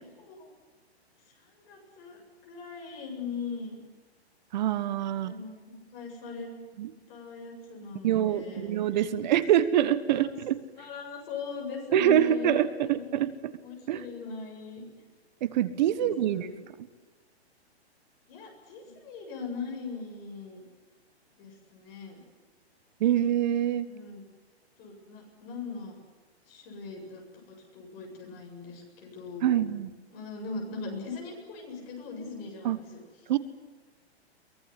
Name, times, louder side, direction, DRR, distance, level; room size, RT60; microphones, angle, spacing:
voice 1, 1.3-3.8 5.2-6.5 7.1-8.7 9.3-9.4 10.1-10.3 10.8-13.3 13.6-14.8 16.0-16.5 18.3-20.6 21.4-22.2 23.9-24.2 24.8-26.0 26.5-29.6 30.1-33.0 33.3-33.4, left 5 dB, 30° left, 1 dB, 7.7 m, -40 dB
voice 2, 4.5-5.3 6.8-6.9 8.0-10.6 11.9-13.5 13.9-14.1 15.4-16.5 23.0-23.9 29.4-29.9 32.6-32.8 33.3-33.4, right 11 dB, 40° right, 14 dB, 1.5 m, -25 dB
24.0 x 21.0 x 9.9 m, 1.3 s
hypercardioid pair, 150°, 33 cm